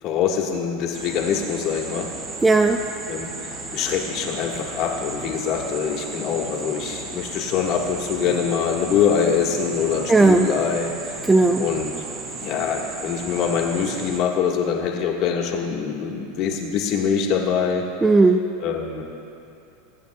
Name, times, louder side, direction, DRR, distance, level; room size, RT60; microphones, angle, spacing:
voice 1, 0.0-2.1 3.1-11.2 11.6-11.9 12.4-17.8 18.6-19.0, left 7 dB, 50° left, 0 dB, 1.4 m, -24 dB
sound 1, 0.9-14.2, right 3 dB, 40° right, 2.1 m, -35 dB
voice 2, 2.4-2.8 10.1-10.5 11.3-11.7 18.0-18.4, right 3 dB, 10° right, 5 dB, 0.4 m, -15 dB
22.0 x 8.7 x 2.3 m, 2.8 s
supercardioid pair, 130°, 0 cm